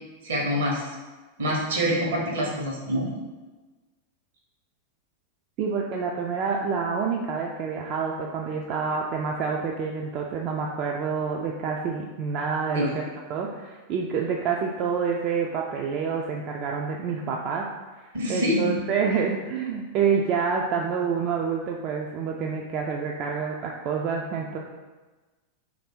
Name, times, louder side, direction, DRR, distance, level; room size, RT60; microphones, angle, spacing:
voice 1, 0.2-0.9 1.4-3.1 12.7-13.0 18.1-18.6, equal, 65° right, -2 dB, 1.0 m, -26 dB
voice 2, 5.6-13.0 13.3-17.7 18.3-24.6, right 6 dB, 40° right, -1 dB, 0.3 m, -27 dB
3.2 x 2.6 x 4.4 m, 1.2 s
figure-of-eight pair, 90°, 0 cm